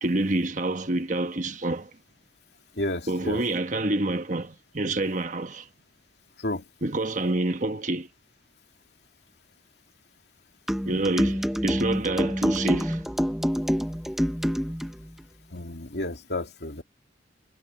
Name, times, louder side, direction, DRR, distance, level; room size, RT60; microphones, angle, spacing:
voice 1, 0.0-1.9 3.1-5.7 6.8-8.1 10.8-13.1, right 2 dB, 40° right, 1.2 m, -27 dB
voice 2, 2.8-3.4 6.4-6.6 15.5-16.8, left 1 dB, 65° left, 2.6 m, -31 dB
sound 1, 10.7-14.9, equal, ahead, 1.0 m, -27 dB
head